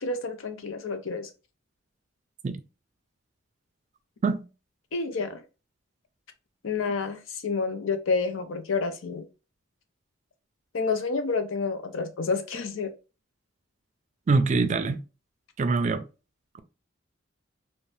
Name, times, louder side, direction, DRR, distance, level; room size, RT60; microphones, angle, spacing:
voice 1, 0.0-1.3 4.9-5.4 6.6-9.2 10.7-12.9, left 4 dB, 85° left, 0.5 m, -29 dB
voice 2, 14.3-15.0 15.6-16.0, right 4 dB, 35° right, 0.3 m, -24 dB
2.6 x 2.1 x 3.1 m
head